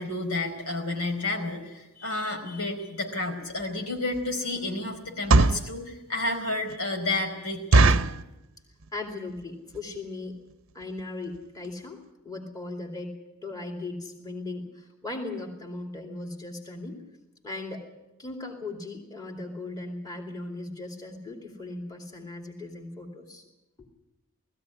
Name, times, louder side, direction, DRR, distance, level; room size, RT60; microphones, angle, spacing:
voice 1, 0.0-8.1, left 2 dB, 80° left, 2 dB, 4.6 m, -31 dB
sound 1, 3.5-3.6 4.1-4.3 5.0-5.7 6.3-6.4 6.7-6.8 7.1-7.2 7.7-8.2 8.8-9.1 9.4-9.5 9.7-10.0 10.5-10.6 10.8-11.0 11.3-11.4 11.6-11.7, right 3 dB, 60° right, 0.7 m, -20 dB
voice 2, 8.9-10.3 10.7-12.0 12.2-13.1 13.4-17.0 17.4-17.9 18.2-23.4, left 2 dB, 15° left, 1 dB, 2.7 m, -37 dB
19.5 x 15.0 x 9.9 m, 0.98 s
head